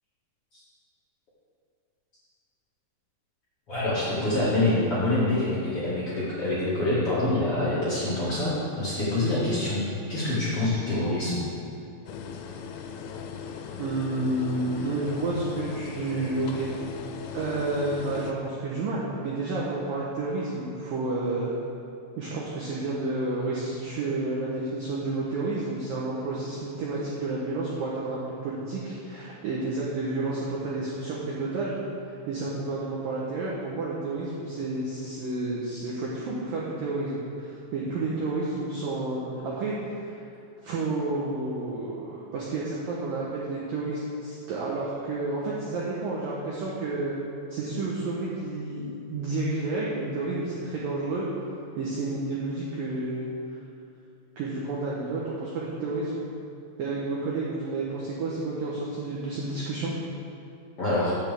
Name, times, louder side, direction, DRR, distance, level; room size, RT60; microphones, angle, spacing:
voice 1, 3.7-11.4 60.8-61.1, left 2 dB, 50° left, -11 dB, 1.9 m, -26 dB
sound 1, 12.1-18.3, left 6 dB, 85° left, 3.0 m, -38 dB
voice 2, 13.8-16.7 17.3-21.5 22.2-31.8 32.3-39.8 40.6-47.2 47.5-51.2 51.8-53.2 54.4-56.2 56.8-59.9, right 2 dB, 85° right, -5 dB, 2.0 m, -30 dB
14.5 x 7.9 x 3.5 m, 2.8 s
omnidirectional pair, 5.6 m